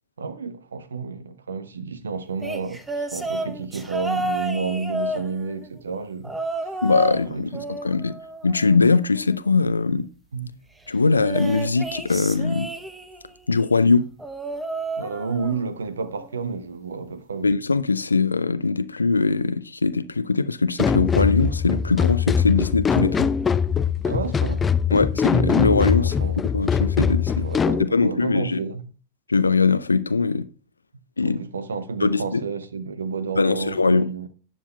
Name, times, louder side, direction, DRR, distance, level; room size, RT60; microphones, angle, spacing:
voice 1, 0.2-6.3 7.1-7.7 10.3-10.5 15.0-17.5 24.0-24.6 26.0-26.4 27.4-28.9 31.2-34.3, right 5 dB, 70° right, 0.7 m, -31 dB
sound 1, 2.4-5.7 6.2-7.2 7.5-9.1 11.1-13.3 14.2-15.7 16.0-16.4 17.5-17.6, right 2 dB, 10° right, 0.9 m, -31 dB
voice 2, 6.8-8.2 8.4-10.1 10.9-12.7 13.5-14.1 17.4-23.3 24.9-27.5 27.8-28.6 29.3-30.5 31.2-31.4 32.0-32.4 33.4-34.1, left 4 dB, 80° left, 0.4 m, -21 dB
sound 2, 20.8-27.8, left 6 dB, 20° left, 0.4 m, -22 dB
17.5 x 7.2 x 2.3 m
figure-of-eight pair, 90°, 0 cm